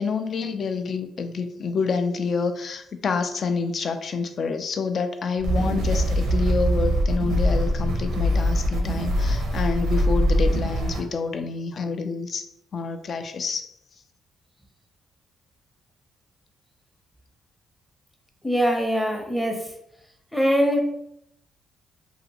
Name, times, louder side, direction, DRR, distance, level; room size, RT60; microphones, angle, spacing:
voice 1, 0.0-12.5 12.7-13.7, left 5 dB, 50° left, 8 dB, 0.3 m, -28 dB
sound 1, 5.4-11.0, equal, 90° right, 0.6 m, -23 dB
voice 2, 18.4-19.6 20.3-20.8, equal, 5° left, 2 dB, 0.6 m, -22 dB
2.7 x 2.4 x 2.9 m, 0.77 s
cardioid pair, 90°, 0 cm